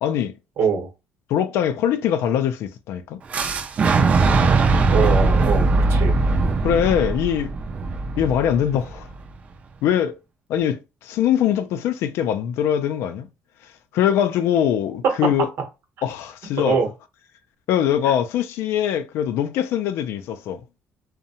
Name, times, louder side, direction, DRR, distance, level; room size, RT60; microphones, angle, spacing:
voice 1, 0.0-0.3 1.3-3.2 6.6-7.5 8.2-9.1 9.8-10.1 10.5-13.3 13.9-15.5 16.0-16.8 17.7-20.6, left 10 dB, 80° left, 0.3 m, -22 dB
voice 2, 0.6-0.9 4.5-4.6 4.9-6.2 15.0-15.1 16.6-16.9 18.0-18.1, right 6 dB, 65° right, 0.8 m, -23 dB
Boom, 3.3-9.2, right 3 dB, 30° right, 0.3 m, -20 dB
2.6 x 2.0 x 2.7 m
cardioid pair, 155°, 4 cm